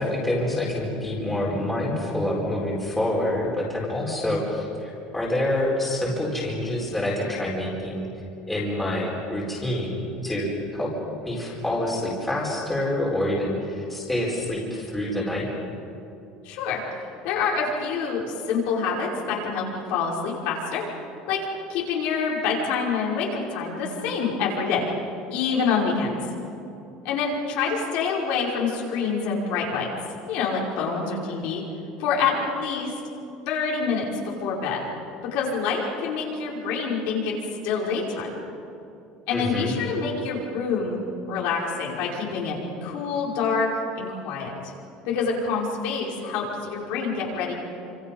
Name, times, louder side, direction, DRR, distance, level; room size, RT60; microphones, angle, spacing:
voice 1, 0.0-8.1 8.5-10.9 11.2-15.5 39.3-39.7, left 1 dB, 5° left, -4 dB, 4.6 m, -27 dB
voice 2, 16.4-16.8 17.2-20.8 21.3-21.4 21.7-24.9 25.3-26.1 27.0-29.9 30.3-31.6 32.0-32.9 33.5-34.8 35.3-37.3 37.6-38.3 39.3-41.0 41.3-43.7 44.0-44.7 45.1-47.5, left 5 dB, 65° left, -3 dB, 5.6 m, -26 dB
28.0 x 26.5 x 5.6 m, 2.8 s
cardioid pair, 170°, 2 cm